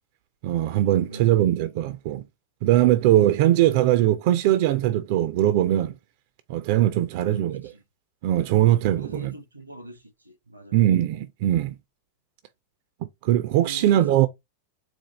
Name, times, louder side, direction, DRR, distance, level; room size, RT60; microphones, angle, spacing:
voice 1, 0.4-2.2 2.6-5.9 6.5-7.7 8.2-9.3 10.7-11.8 13.0-14.3, right 13 dB, 50° right, 0.4 m, -21 dB
voice 2, 1.0-1.5 7.2-7.6 9.0-10.0 10.5-10.8 13.6-14.0, right 1 dB, 85° right, 0.8 m, -41 dB
4.3 x 2.3 x 4.2 m
figure-of-eight pair, 90°, 0 cm